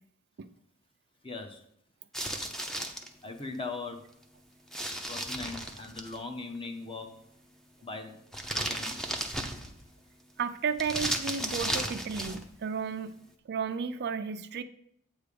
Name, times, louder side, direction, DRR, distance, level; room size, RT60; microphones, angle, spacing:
voice 1, 1.2-1.6 2.6-2.7 3.2-4.0 5.1-7.1 7.8-8.1 8.5-9.0, left 3 dB, 25° left, 4 dB, 0.9 m, -39 dB
sound 1, 2.1-3.1 4.7-6.2 8.3-9.9 10.8-12.5, right 1 dB, ahead, 0.6 m, -34 dB
voice 2, 10.4-13.2 13.5-14.6, right 6 dB, 50° right, 10 dB, 0.4 m, -33 dB
8.5 x 3.4 x 6.7 m, 0.73 s
head